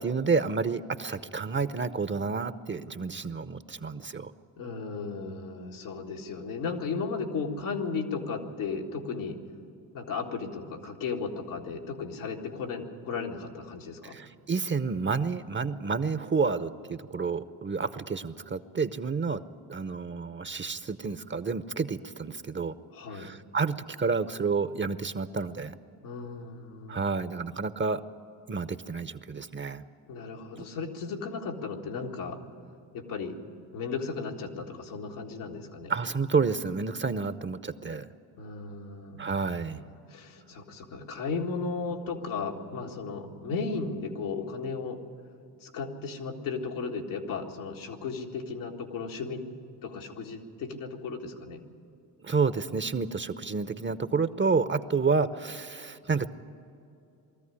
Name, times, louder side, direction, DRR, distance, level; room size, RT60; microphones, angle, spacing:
voice 1, 0.0-4.3 14.0-19.4 19.7-22.7 23.1-25.8 26.9-28.0 28.5-29.8 30.6-30.7 35.9-38.1 39.2-39.8 52.2-56.3, right 4 dB, 25° right, 13 dB, 0.8 m, -30 dB
voice 2, 4.6-9.4 9.9-14.2 22.9-23.3 26.0-27.1 30.1-32.4 32.9-33.4 33.7-35.9 38.4-39.5 39.8-45.0 45.6-49.4 49.8-51.6, left 4 dB, 85° left, 0 dB, 2.0 m, -35 dB
20.0 x 14.0 x 9.8 m, 2.7 s
supercardioid pair, 55°, 47 cm